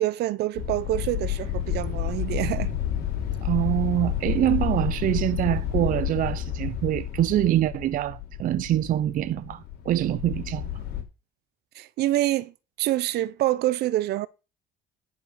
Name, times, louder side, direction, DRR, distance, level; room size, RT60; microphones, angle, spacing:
voice 1, 0.0-2.7 11.7-12.5 12.8-14.3, right 15 dB, 75° right, 0.8 m, -26 dB
sound 1, 0.6-11.0, left 10 dB, 75° left, 3.0 m, -30 dB
voice 2, 3.4-10.7, right 13 dB, 55° right, 0.5 m, -25 dB
10.5 x 5.0 x 6.7 m
cardioid pair, 110°, 17 cm